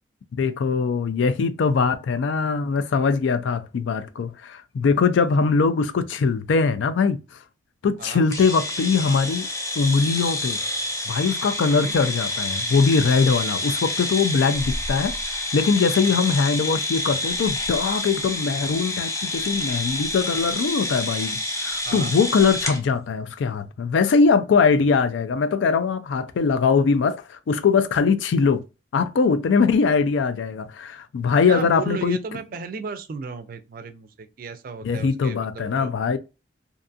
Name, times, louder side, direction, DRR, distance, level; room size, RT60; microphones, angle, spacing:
voice 1, 0.4-7.2 7.8-9.5 9.8-10.6 11.1-28.6 28.9-32.2 34.8-36.2, left 5 dB, 85° left, 0.3 m, -21 dB
sound 1, 8.3-22.8, left 1 dB, 15° left, 0.5 m, -28 dB
voice 2, 31.5-35.9, right 5 dB, 50° right, 0.4 m, -35 dB
2.5 x 2.3 x 2.5 m
head